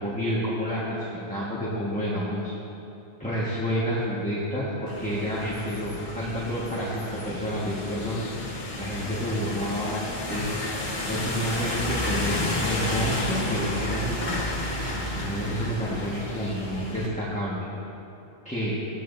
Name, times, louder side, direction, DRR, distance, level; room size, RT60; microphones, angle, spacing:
voice 1, 0.0-2.5 3.2-8.2 8.8-10.5 11.1-14.3 15.1-17.6 18.4-18.7, equal, 5° left, -8 dB, 1.4 m, -29 dB
sound 1, 4.9-17.1, left 2 dB, 45° left, 1.5 m, -31 dB
16.5 x 9.1 x 2.7 m, 2.8 s
omnidirectional pair, 1.1 m